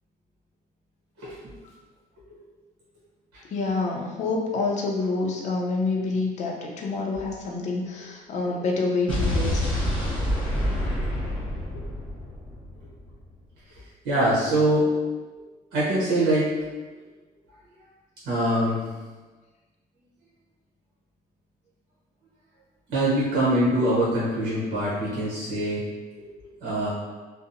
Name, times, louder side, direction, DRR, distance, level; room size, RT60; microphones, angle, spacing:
voice 1, 1.2-1.5 2.3-2.4 12.8-12.9 13.7-14.9 15.7-16.5 18.2-18.9 22.9-25.8 26.2-26.9, right 1 dB, 85° right, -8 dB, 0.8 m, -24 dB
voice 2, 3.5-9.6, left 3 dB, 45° left, -1 dB, 0.5 m, -27 dB
Explosion, 9.1-13.2, left 1 dB, 10° left, 1.0 m, -27 dB
2.7 x 2.0 x 2.5 m, 1.3 s
cardioid pair, 110°, 17 cm